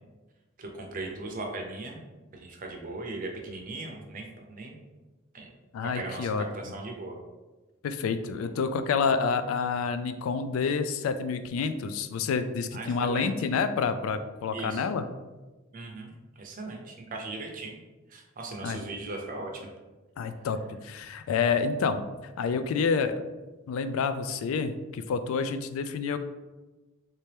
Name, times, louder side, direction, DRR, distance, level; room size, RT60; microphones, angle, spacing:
voice 1, 0.6-2.0 2.3-4.7 5.3-5.5 5.8-7.2 12.7-13.5 14.5-14.8 15.7-17.8 18.1-19.7, right 2 dB, 40° right, 1 dB, 0.6 m, -38 dB
voice 2, 5.7-6.7 7.8-15.0 18.6-18.8 20.2-22.0 22.4-23.2 23.7-26.2, left 5 dB, 80° left, 11 dB, 0.3 m, -28 dB
3.2 x 2.8 x 3.3 m, 1.2 s
head